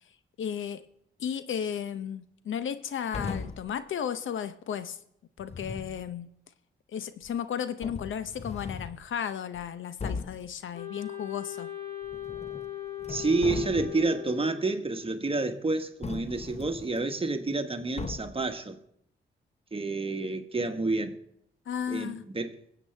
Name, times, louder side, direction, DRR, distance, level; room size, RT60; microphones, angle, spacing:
voice 1, 0.4-0.8 1.2-5.0 5.4-6.3 6.9-11.7 21.7-22.2, left 8 dB, 70° left, 0.7 m, -34 dB
sound 1, 3.1-3.7 5.4-6.0 7.2-7.3 7.8-9.0 9.5-9.6 10.0-10.5 12.0-12.7 13.0-14.1 16.0-17.0 18.0-18.5, left 4 dB, 30° left, 0.8 m, -38 dB
Wind instrument woodwind instrument, 10.7-14.7, left 12 dB, 50° left, 6.4 m, -39 dB
voice 2, 13.1-18.8 19.7-21.2 21.9-22.6, right 3 dB, 25° right, 1.3 m, -29 dB
23.0 x 7.9 x 3.3 m
supercardioid pair, 50°, 21 cm